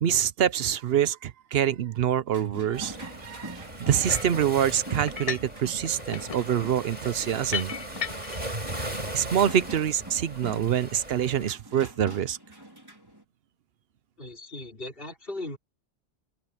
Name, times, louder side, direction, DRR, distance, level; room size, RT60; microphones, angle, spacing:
voice 1, 0.0-7.7 9.1-12.4, right 9 dB, 70° right, 0.9 m, -26 dB
sound 1, 2.3-13.2, right 1 dB, 20° right, 4.6 m, -45 dB
Waves surf, 2.7-11.5, right 1 dB, 40° right, 6.5 m, -38 dB
sound 2, 4.1-4.4 5.1-5.6 5.8-8.5, left 7 dB, 40° left, 0.6 m, -35 dB
voice 2, 14.2-15.6, left 2 dB, 60° left, 4.5 m, -38 dB
open air
omnidirectional pair, 1.1 m